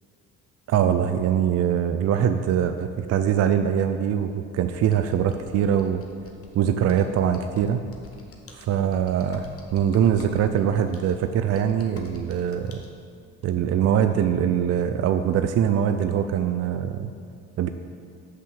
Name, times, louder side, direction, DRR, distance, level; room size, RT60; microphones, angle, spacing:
voice 1, 0.7-6.0 6.5-7.8 8.5-12.8 13.4-17.1 17.6-17.7, right 9 dB, 50° right, 8 dB, 0.5 m, -23 dB
Computer keyboard, 4.7-12.9, left 3 dB, 40° left, 1.2 m, -49 dB
5.8 x 5.5 x 6.7 m, 2.3 s
hypercardioid pair, 55°, 34 cm